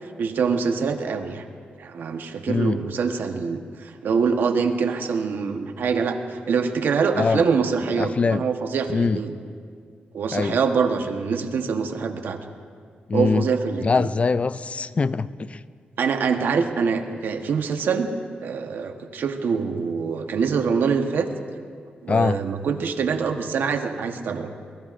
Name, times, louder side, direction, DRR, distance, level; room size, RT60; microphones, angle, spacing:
voice 1, 0.2-1.4 1.8-9.3 10.1-12.4 13.1-14.1 16.0-18.1 18.4-21.3 22.0-24.5, right 5 dB, 75° right, 6 dB, 1.1 m, -24 dB
voice 2, 2.5-2.8 7.2-7.4 8.0-8.4 8.9-9.2 10.3-10.6 13.1-13.5 13.8-15.6 22.1-22.4, left 4 dB, 40° left, 16 dB, 0.4 m, -22 dB
22.5 x 21.0 x 2.6 m, 2.1 s
cardioid pair, 75°, 3 cm